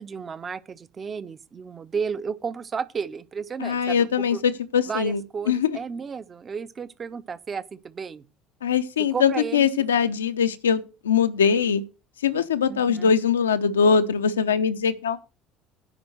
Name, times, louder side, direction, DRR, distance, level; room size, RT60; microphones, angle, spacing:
voice 1, 0.0-4.4 4.9-8.2 9.1-9.7 12.7-13.2, right 6 dB, 35° right, 0.8 m, -33 dB
voice 2, 3.6-5.2 5.5-5.8 8.6-11.8 12.2-15.2, left 7 dB, 80° left, 0.7 m, -22 dB
10.0 x 5.2 x 7.7 m
figure-of-eight pair, 60°, 0 cm